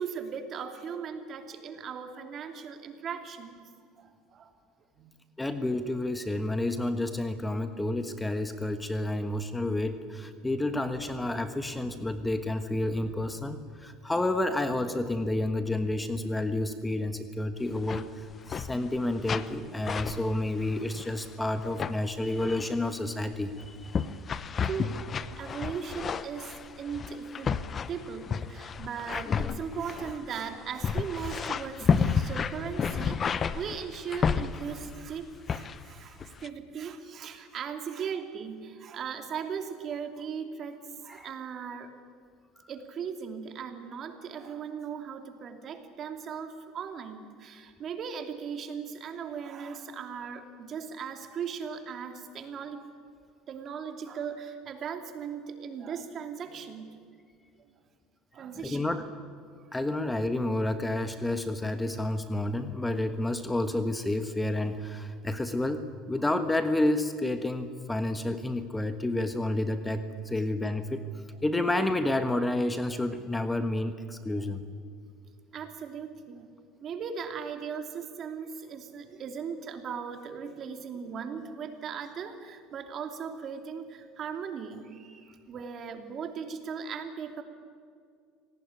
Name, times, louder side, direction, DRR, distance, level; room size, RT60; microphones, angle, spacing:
voice 1, 0.0-3.6 3.9-4.5 4.9-5.1 23.9-24.2 24.6-25.1 25.4-27.6 27.9-41.9 42.7-52.8 53.5-57.0 58.3-58.9 59.6-59.7 75.5-76.5 76.8-87.4, right 6 dB, 40° right, 6 dB, 2.8 m, -38 dB
voice 2, 5.4-24.1 41.1-41.3 58.6-59.0 59.7-71.0 71.4-74.7, left 1 dB, 10° left, 9 dB, 1.3 m, -30 dB
sound 1, 17.6-18.0 18.3-19.0 19.2-19.6 19.9-21.3 21.6-21.9 22.4-22.7 23.3-34.9 35.5-35.9 36.2-36.5, left 6 dB, 30° left, 0.9 m, -31 dB
26.0 x 18.5 x 9.8 m, 2.2 s
supercardioid pair, 115°, 0 cm